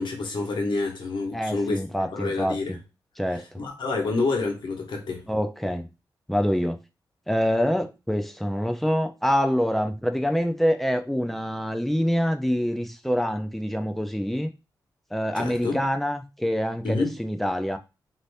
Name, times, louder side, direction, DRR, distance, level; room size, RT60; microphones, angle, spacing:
voice 1, 0.0-1.8 2.1-2.8 3.6-5.3 15.3-15.8 16.8-17.2, left 3 dB, 80° left, 1.0 m, -28 dB
voice 2, 1.3-2.8 3.2-3.4 5.3-5.9 6.3-6.8 7.3-14.5 15.1-17.8, equal, 5° left, 0.4 m, -26 dB
2.7 x 2.6 x 3.3 m
wide cardioid pair, 130°, 8 cm